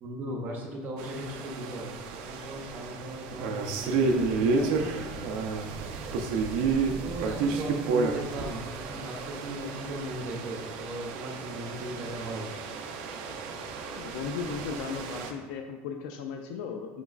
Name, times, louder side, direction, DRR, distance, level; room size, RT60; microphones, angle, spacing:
voice 1, 0.0-1.9 2.3-5.3 5.8-6.2 7.0-12.5, right 1 dB, 35° right, -1 dB, 0.7 m, -38 dB
sound 1, 1.0-15.3, right 4 dB, 70° right, 0.4 m, -31 dB
voice 2, 14.0-17.0, left 6 dB, 80° left, 4 dB, 0.3 m, -36 dB
5.1 x 3.0 x 2.4 m, 1.3 s
cardioid pair, 160°, 6 cm